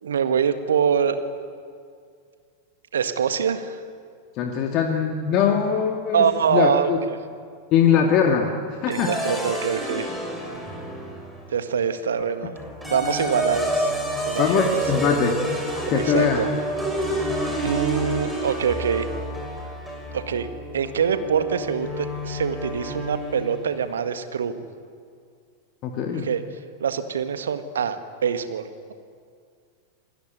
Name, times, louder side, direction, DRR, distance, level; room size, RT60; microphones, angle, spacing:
voice 1, 0.0-1.2 2.9-3.8 6.1-6.9 8.9-10.1 11.5-12.5 12.9-13.9 14.2-14.8 15.9-16.5 17.6-19.1 20.1-20.5 20.7-24.7 26.2-26.4 26.8-28.0 28.2-28.9, right 7 dB, 65° right, 9 dB, 1.7 m, -24 dB
voice 2, 4.4-7.0 7.7-8.5 8.8-9.1 14.4-15.4 15.9-16.4 25.8-26.3, left 7 dB, 40° left, 2 dB, 2.1 m, -21 dB
sound 1, 8.9-11.5 12.6-23.7, right 1 dB, ahead, 6.7 m, -29 dB
27.5 x 19.5 x 9.5 m, 2.2 s
figure-of-eight pair, 90°, 0 cm